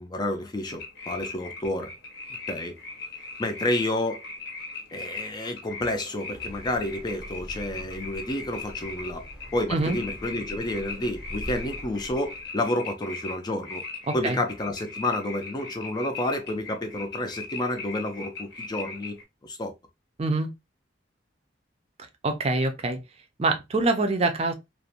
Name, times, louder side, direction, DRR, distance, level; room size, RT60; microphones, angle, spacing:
voice 1, 0.0-1.9 2.5-2.7 3.4-4.2 4.9-9.2 9.5-13.8 14.1-19.7, left 1 dB, 25° left, 0.4 m, -30 dB
sound 1, 0.7-19.2, left 3 dB, 65° left, 0.8 m, -39 dB
sound 2, 6.3-12.5, equal, 5° right, 0.8 m, -43 dB
voice 2, 14.1-14.4 20.2-20.5 22.2-23.0 23.4-24.5, right 2 dB, 35° right, 0.5 m, -25 dB
2.5 x 2.1 x 2.7 m
head